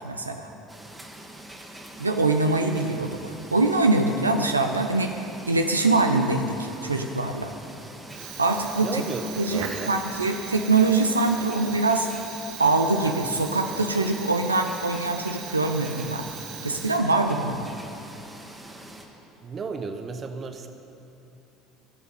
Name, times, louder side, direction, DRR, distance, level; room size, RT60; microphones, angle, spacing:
voice 1, 0.0-0.5 2.0-7.5 8.4-9.0 9.4-12.1 12.6-16.3 16.6-17.7, right 3 dB, 85° right, 5 dB, 0.5 m, -23 dB
sound 1, 0.7-19.1, right 1 dB, 10° right, 1.7 m, -44 dB
Fire, 8.0-17.4, right 7 dB, 60° right, 1.3 m, -39 dB
voice 2, 8.8-10.0 11.0-11.1 11.4-11.7 19.4-20.7, right 4 dB, 35° right, 7 dB, 1.1 m, -34 dB
14.0 x 7.0 x 9.3 m, 2.9 s
figure-of-eight pair, 60°, 0 cm